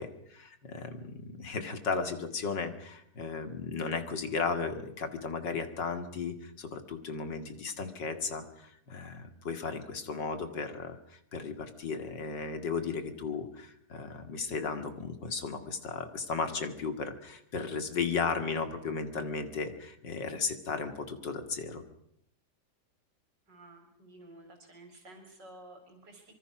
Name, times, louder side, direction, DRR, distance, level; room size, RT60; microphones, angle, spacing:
voice 1, 0.0-21.8, left 5 dB, 90° left, 8 dB, 3.0 m, -35 dB
voice 2, 23.5-26.3, right 2 dB, 80° right, 5 dB, 4.9 m, -52 dB
26.0 x 24.5 x 6.1 m, 0.73 s
omnidirectional pair, 1.9 m